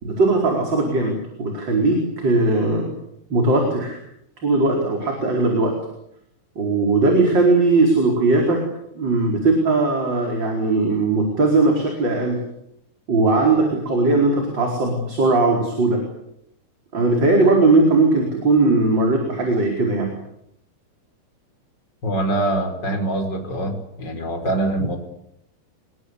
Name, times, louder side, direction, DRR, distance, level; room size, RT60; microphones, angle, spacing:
voice 1, 0.0-2.9 3.3-4.0 4.4-5.7 6.5-8.6 8.9-12.4 13.1-16.0 16.9-20.1, right 3 dB, 25° right, 1 dB, 4.9 m, -19 dB
voice 2, 22.0-23.7 24.0-25.0, right 1 dB, 25° left, 5 dB, 5.1 m, -23 dB
27.5 x 21.5 x 8.4 m, 0.79 s
omnidirectional pair, 5.4 m